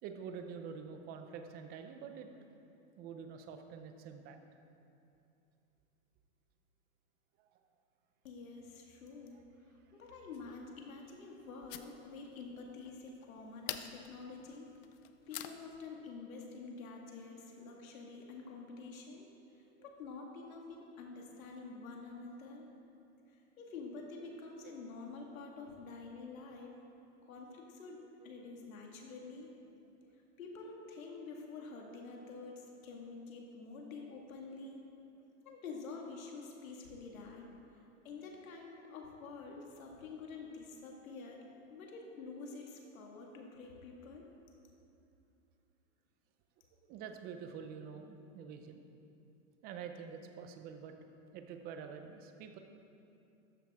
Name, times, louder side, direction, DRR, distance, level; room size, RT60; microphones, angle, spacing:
voice 1, 0.0-2.3 3.0-4.4 7.4-7.5 19.8-19.9 28.0-28.1 46.9-48.8 49.6-50.9 51.3-52.6, right 6 dB, 25° right, 6 dB, 0.6 m, -47 dB
voice 2, 8.2-9.4 9.7-14.7 15.3-22.7 23.3-26.8 27.3-29.5 30.4-34.8 35.4-37.5 37.8-44.3, left 4 dB, 90° left, 0 dB, 2.0 m, -48 dB
sound 1, 10.3-15.8, left 12 dB, 45° left, 0.5 m, -49 dB
13.5 x 10.5 x 3.6 m, 2.7 s
supercardioid pair, 155°, 40 cm